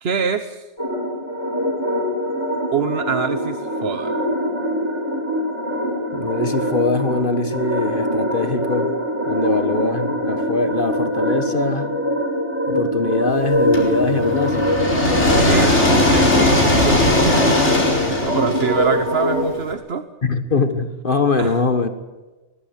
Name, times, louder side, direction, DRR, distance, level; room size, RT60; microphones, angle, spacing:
voice 1, 0.0-0.6 2.7-4.1 15.3-20.0 21.4-21.6, right 6 dB, 60° right, 10 dB, 1.2 m, -25 dB
sound 1, 0.8-19.4, equal, 20° left, 7.9 m, -23 dB
voice 2, 6.1-8.9 9.3-11.9 12.7-14.7 18.0-18.1 20.2-21.9, left 3 dB, 50° left, 9 dB, 1.7 m, -22 dB
sound 2, 13.7-19.6, left 1 dB, 75° left, 4.9 m, -18 dB
21.5 x 21.0 x 8.3 m, 1.1 s
omnidirectional pair, 1.2 m